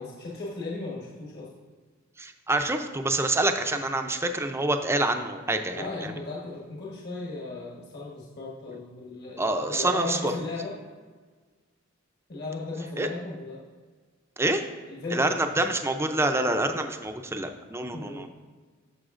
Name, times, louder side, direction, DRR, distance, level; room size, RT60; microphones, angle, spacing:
voice 1, 0.0-1.5 5.7-10.8 12.3-13.6 14.5-14.6 14.9-15.4 17.9-18.3, left 3 dB, 55° left, -4 dB, 1.3 m, -36 dB
voice 2, 2.2-6.2 9.4-10.3 13.0-13.1 14.4-14.6 15.1-18.3, right 2 dB, 15° right, 6 dB, 0.5 m, -27 dB
11.0 x 6.8 x 2.5 m, 1.5 s
head